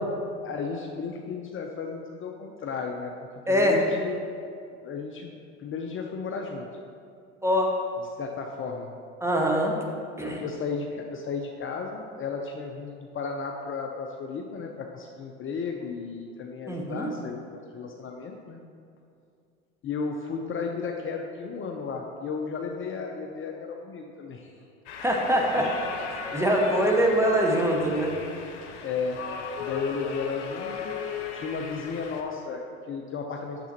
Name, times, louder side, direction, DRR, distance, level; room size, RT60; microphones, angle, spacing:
voice 1, 0.4-3.1 3.5-4.3 4.8-6.7 8.2-8.9 10.4-18.6 19.8-24.5 28.8-29.2 29.6-30.9 31.3-33.7, left 5 dB, 35° left, 2 dB, 0.7 m, -34 dB
voice 2, 3.5-3.8 7.4-7.8 9.2-9.7 10.2-10.4 16.7-17.1 25.0-25.7 26.1-28.1, equal, 5° right, 0 dB, 1.2 m, -23 dB
sound 1, 24.9-32.2, left 6 dB, 75° left, 0.9 m, -36 dB
9.3 x 6.8 x 2.9 m, 2.4 s
hypercardioid pair, 80°, 36 cm